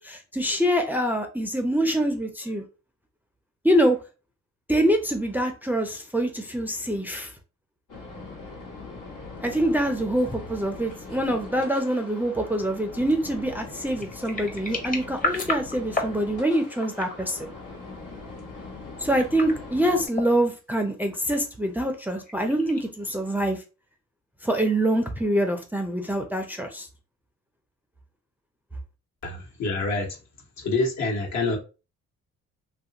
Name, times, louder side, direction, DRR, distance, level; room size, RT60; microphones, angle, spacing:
voice 1, 0.0-2.6 3.6-4.0 4.7-7.3 9.4-17.5 19.0-23.6 24.4-26.9, right 1 dB, 5° right, 0.5 m, -25 dB
sound 1, 7.9-20.1, left 3 dB, 80° left, 1.2 m, -41 dB
sound 2, 13.4-16.2 16.7-17.2 19.0-19.6 20.1-20.4 22.0-23.1, left 2 dB, 30° left, 0.9 m, -32 dB
voice 2, 29.2-30.2 30.6-31.6, left 3 dB, 65° left, 1.2 m, -26 dB
2.9 x 2.5 x 2.8 m
cardioid pair, 90°, 30 cm